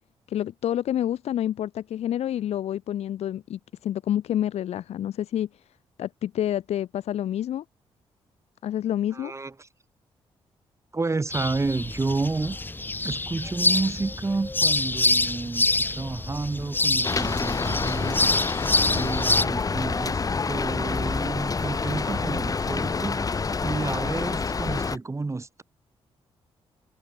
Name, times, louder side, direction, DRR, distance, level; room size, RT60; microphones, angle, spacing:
voice 1, 0.3-5.6 6.0-7.6 8.6-9.3, left 11 dB, 80° left, 4.2 m, -28 dB
voice 2, 9.1-9.7 10.9-12.6 13.0-18.2 18.9-23.3 23.6-25.6, right 3 dB, 25° right, 4.3 m, -30 dB
sound 1, 11.3-19.4, left 2 dB, 20° left, 1.9 m, -26 dB
Rain, 17.0-25.0, left 4 dB, 35° left, 1.4 m, -27 dB
cardioid pair, 75°, 11 cm